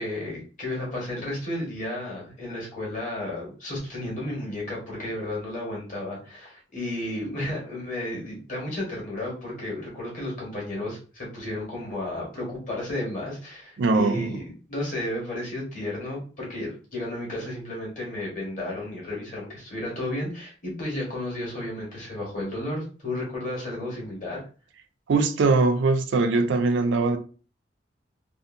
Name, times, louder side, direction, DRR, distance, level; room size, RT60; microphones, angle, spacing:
voice 1, 0.0-24.4, left 1 dB, 40° left, 1.3 m, -33 dB
voice 2, 13.8-14.4 25.1-27.2, right 3 dB, 80° right, 0.4 m, -21 dB
2.7 x 2.4 x 2.5 m
head